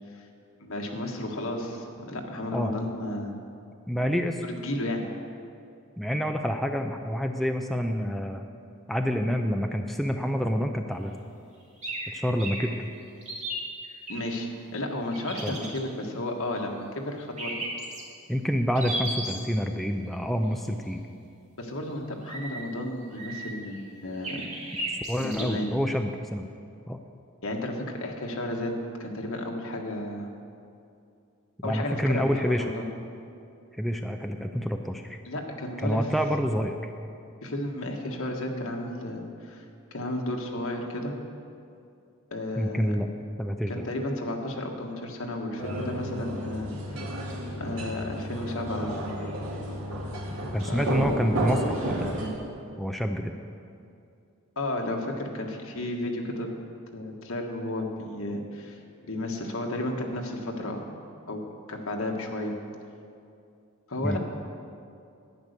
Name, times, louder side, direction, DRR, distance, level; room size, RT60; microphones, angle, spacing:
voice 1, 0.6-3.3 4.4-5.1 14.1-17.6 21.6-24.5 25.2-25.7 27.4-28.7 29.0-30.3 31.6-32.9 35.2-36.1 37.4-39.6 39.9-41.1 42.3-42.9 43.7-47.0 47.6-48.9 50.6-50.8 54.6-56.5 56.9-58.8 59.1-60.8 61.3-61.4 61.7-62.5 63.9-64.2, left 1 dB, 70° left, 2 dB, 1.4 m, -33 dB
voice 2, 3.9-4.4 6.0-8.4 8.9-11.2 12.1-12.8 15.4-15.6 18.3-21.0 25.1-26.5 26.9-27.0 31.6-32.7 33.7-35.2 35.8-36.9 42.6-43.1 43.4-43.7 50.5-52.1 52.8-53.4 64.0-64.2, equal, ahead, 4 dB, 0.4 m, -27 dB
sound 1, 11.8-12.1 12.4-12.6 13.2-14.1 15.1-15.8 17.4-18.0 18.7-19.4 22.2-22.6 23.1-23.7 24.2-25.4, right 1 dB, 35° right, 2.1 m, -34 dB
sound 2, 45.6-52.3, right 1 dB, 70° right, 2.0 m, -32 dB
10.5 x 9.5 x 6.7 m, 2.5 s
head